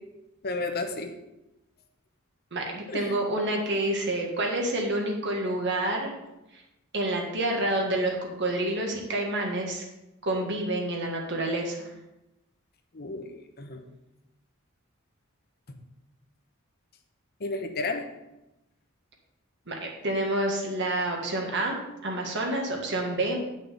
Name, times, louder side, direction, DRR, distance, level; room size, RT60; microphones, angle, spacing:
voice 1, 0.4-1.1 2.9-3.1 12.9-13.8 15.7-15.8 17.4-18.1, left 3 dB, 50° left, 6 dB, 1.0 m, -32 dB
voice 2, 2.5-6.1 6.9-9.8 10.2-11.9 19.7-23.4, right 1 dB, 60° right, 0 dB, 1.7 m, -28 dB
8.8 x 6.3 x 5.1 m, 0.95 s
head